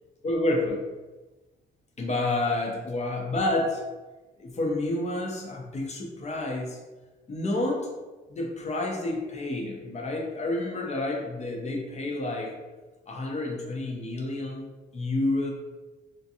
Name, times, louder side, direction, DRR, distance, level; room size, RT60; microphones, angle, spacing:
voice 1, 0.2-0.8 2.0-3.8 4.4-6.8 7.3-7.9 8.3-12.5 13.1-14.7 14.9-15.5, left 2 dB, 35° left, 0 dB, 0.6 m, -29 dB
2.6 x 2.2 x 2.7 m, 1.2 s
cardioid pair, 90°, 20 cm